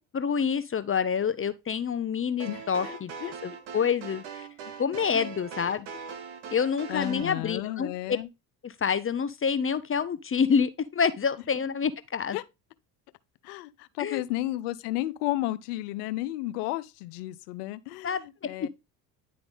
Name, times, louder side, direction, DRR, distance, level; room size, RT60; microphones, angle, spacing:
voice 1, 0.0-3.1 3.4-4.5 4.8-5.9 6.5-7.9 8.6-12.4 14.0-14.2 18.0-18.2 18.6-18.7, left 6 dB, 30° left, 0.6 m, -27 dB
voice 2, 2.4-3.3 4.6-4.8 5.1-5.3 6.9-8.3 12.3-12.4 13.4-18.7, left 16 dB, 90° left, 0.7 m, -33 dB
sound 1, 2.4-7.3, right 6 dB, 80° right, 1.4 m, -41 dB
10.0 x 3.8 x 3.5 m
supercardioid pair, 70°, 45 cm